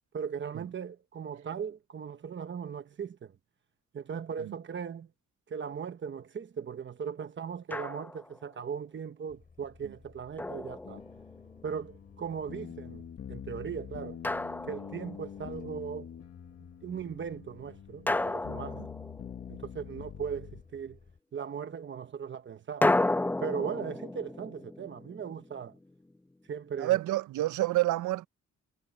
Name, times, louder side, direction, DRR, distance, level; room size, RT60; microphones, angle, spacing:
voice 1, 0.1-3.3 3.9-5.1 5.5-11.0 11.6-13.0 13.3-14.2 14.7-16.1 16.8-18.9 19.5-21.0 21.3-22.9 23.4-25.7 26.5-27.0, right 7 dB, 40° right, 1.1 m, -38 dB
Drum, 7.7-8.4 10.4-11.5 14.2-15.4 18.1-19.7 22.8-25.8, left 2 dB, 5° left, 0.3 m, -32 dB
Truck, 9.3-21.2, left 4 dB, 30° left, 4.9 m, -58 dB
sound 1, 10.8-20.6, left 9 dB, 55° left, 1.4 m, -45 dB
voice 2, 26.8-28.3, right 17 dB, 80° right, 0.5 m, -28 dB
wide cardioid pair, 180°, 30 cm